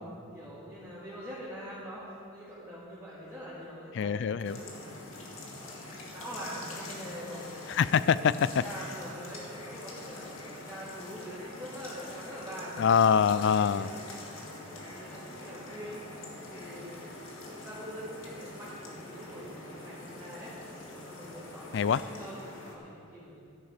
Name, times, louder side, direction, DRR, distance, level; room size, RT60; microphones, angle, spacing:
voice 1, 0.0-5.0 5.3-7.4 7.9-8.2 8.6-12.9 13.3-16.0 16.5-17.1 17.5-20.5 20.9-23.4, equal, 15° right, -11 dB, 2.4 m, -44 dB
voice 2, 3.9-4.6 7.7-8.6 12.8-13.9 21.7-22.0, left 7 dB, 60° left, 17 dB, 0.3 m, -24 dB
sound 1, 4.4-22.8, left 2 dB, 90° left, 1.9 m, -45 dB
12.5 x 10.5 x 5.0 m, 2.4 s
head